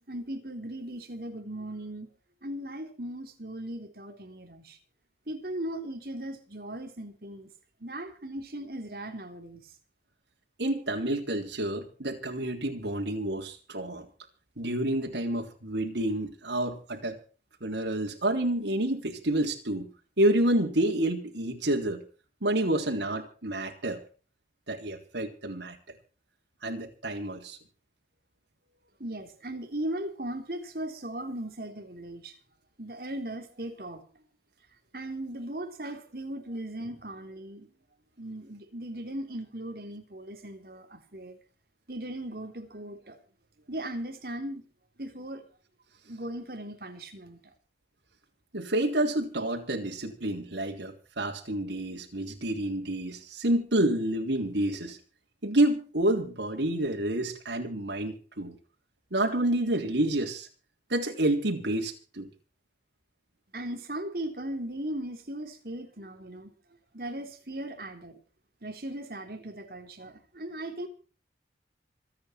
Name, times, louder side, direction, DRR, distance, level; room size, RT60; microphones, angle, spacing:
voice 1, 0.1-2.1 2.4-4.8 5.3-7.5 7.8-9.7 29.0-32.3 32.8-34.0 34.9-37.7 38.2-41.4 41.9-43.2 43.7-44.6 45.0-45.4 46.0-47.4 63.5-66.5 66.9-68.2 68.6-70.9, right 1 dB, 55° right, 3.7 m, -38 dB
voice 2, 10.6-14.1 14.6-17.2 17.6-19.9 20.2-22.0 22.4-24.0 24.7-25.8 26.6-27.6 48.5-55.0 55.4-58.6 59.1-60.5 60.9-62.3, right 1 dB, 85° right, 3.4 m, -29 dB
26.5 x 9.0 x 4.5 m
head